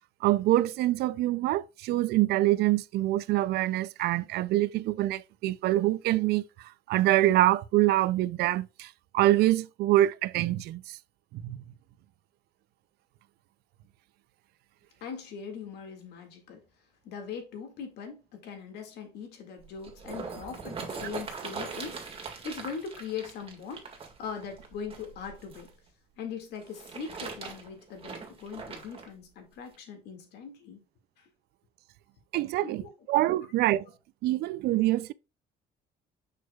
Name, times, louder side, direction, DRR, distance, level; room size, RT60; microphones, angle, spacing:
voice 1, 0.2-11.0 11.3-11.6 32.3-32.8 33.1-33.8 34.2-35.1, right 15 dB, 75° right, 0.4 m, -25 dB
voice 2, 15.0-16.6 17.0-25.7 26.2-30.8 31.2-31.3 32.6-32.9, left 6 dB, 75° left, 2.0 m, -41 dB
sound 1, 19.6-25.7 26.6-29.1 29.7-29.8, right 5 dB, 35° right, 1.9 m, -41 dB
6.6 x 6.2 x 2.3 m
cardioid pair, 110°, 17 cm